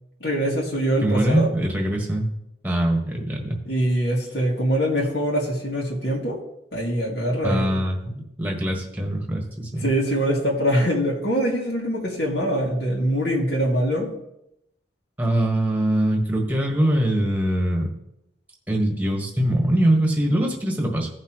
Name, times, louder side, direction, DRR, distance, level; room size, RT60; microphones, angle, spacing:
voice 1, 0.2-1.5 3.7-6.4 6.7-7.7 9.7-14.1, equal, 65° left, -3 dB, 2.0 m, -23 dB
voice 2, 1.0-2.2 2.6-3.6 7.4-9.9 15.2-17.9 18.7-21.1, right 1 dB, 10° right, 1 dB, 1.4 m, -23 dB
16.0 x 5.8 x 3.0 m, 0.81 s
head